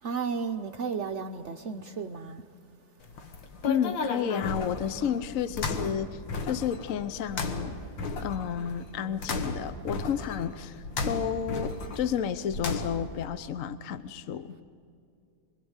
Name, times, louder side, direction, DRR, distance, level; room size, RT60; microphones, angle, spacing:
voice 1, 0.0-2.5, right 5 dB, 60° right, 0.8 m, -33 dB
sound 1, 3.0-13.2, left 3 dB, 90° left, 2.2 m, -35 dB
voice 2, 3.7-7.8 8.2-14.6, left 8 dB, 60° left, 0.9 m, -31 dB
24.0 x 23.5 x 8.0 m
omnidirectional pair, 2.0 m